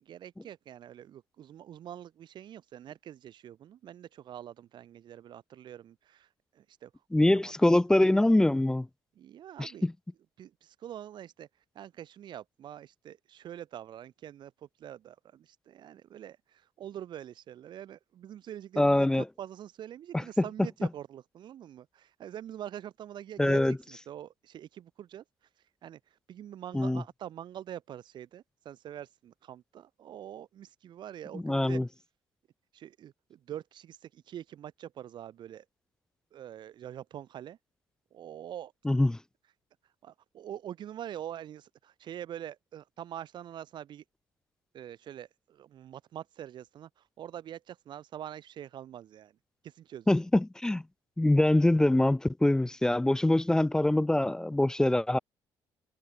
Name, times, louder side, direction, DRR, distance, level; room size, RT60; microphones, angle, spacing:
voice 1, 0.0-7.8 9.2-9.9 10.4-11.5 11.8-25.2 25.8-31.8 32.7-35.7 36.3-37.6 38.1-38.7 40.0-44.0 44.7-49.4 49.6-50.1, right 10 dB, 60° right, 6.9 m, -45 dB
voice 2, 7.1-8.9 9.6-9.9 18.8-19.2 23.4-23.8 26.7-27.0 31.4-31.9 38.9-39.2 50.1-50.8 51.2-55.2, left 1 dB, 5° left, 0.4 m, -24 dB
cardioid pair, 125°, 9 cm